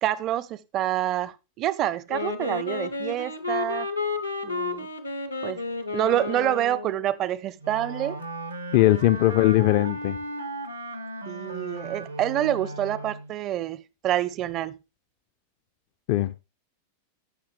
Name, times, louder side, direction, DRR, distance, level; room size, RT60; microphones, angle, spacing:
voice 1, 0.0-3.9 4.4-4.9 5.4-5.6 5.9-8.2 11.3-14.8, right 12 dB, 35° right, 0.5 m, -27 dB
Wind instrument woodwind instrument, 2.1-7.1, left 3 dB, 85° left, 0.9 m, -31 dB
Wind instrument woodwind instrument 2, 7.6-13.4, right 1 dB, 80° right, 0.9 m, -36 dB
voice 2, 8.7-10.2 16.1-16.4, left 15 dB, 50° left, 0.4 m, -20 dB
14.0 x 5.9 x 3.2 m
figure-of-eight pair, 90°, 0 cm